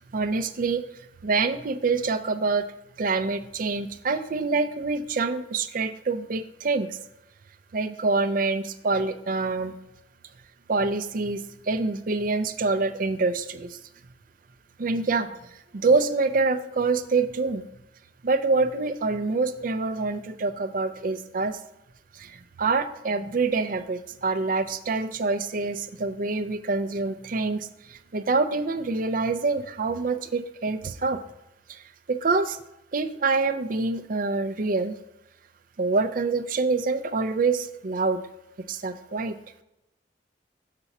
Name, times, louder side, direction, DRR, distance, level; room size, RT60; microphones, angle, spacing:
voice 1, 0.1-0.8 1.2-2.7 3.0-7.0 7.7-9.8 10.7-11.4 11.7-13.8 14.8-15.3 15.7-17.6 18.2-21.6 22.2-27.7 28.1-31.2 31.7-31.8 32.1-32.6 32.9-34.9 35.8-38.2 38.7-39.3, right 3 dB, 50° right, 11 dB, 0.5 m, -26 dB
6.8 x 4.1 x 5.9 m, 0.90 s
head